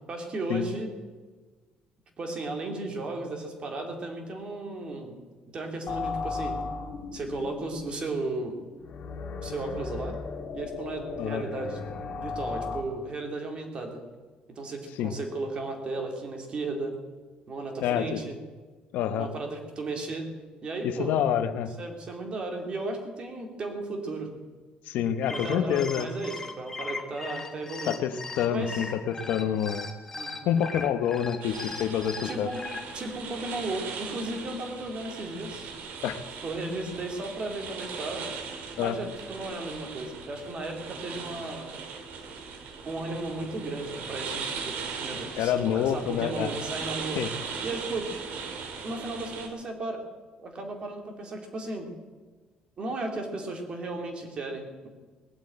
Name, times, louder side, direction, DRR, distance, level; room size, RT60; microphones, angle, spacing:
voice 1, 0.1-0.9 2.2-5.2 5.5-6.6 7.1-8.6 9.4-10.1 10.5-11.8 12.2-14.0 14.5-16.9 17.5-18.4 19.2-20.3 20.6-21.2 21.8-24.3 25.3-28.0 28.5-28.9 30.1-30.7 32.2-32.7 32.9-35.7 36.4-38.3 38.8-41.8 42.8-47.2 47.6-48.1 48.8-50.0 50.4-51.9 52.8-54.9, right 2 dB, 35° right, 3 dB, 2.7 m, -35 dB
sound 1, 5.9-12.8, left 4 dB, 50° left, 1.8 m, -36 dB
voice 2, 17.8-18.2 18.9-19.3 20.8-21.7 24.9-26.1 27.9-29.9 30.5-32.5 36.0-36.2 38.8-39.0 45.4-46.5 47.2-47.3, left 9 dB, 80° left, 10 dB, 1.0 m, -27 dB
sound 2, 25.1-32.8, left 3 dB, 15° left, 1.7 m, -38 dB
sound 3, 31.4-49.5, right 5 dB, 70° right, 2.3 m, -39 dB
19.5 x 7.9 x 8.7 m, 1.4 s
cardioid pair, 160°, 3 cm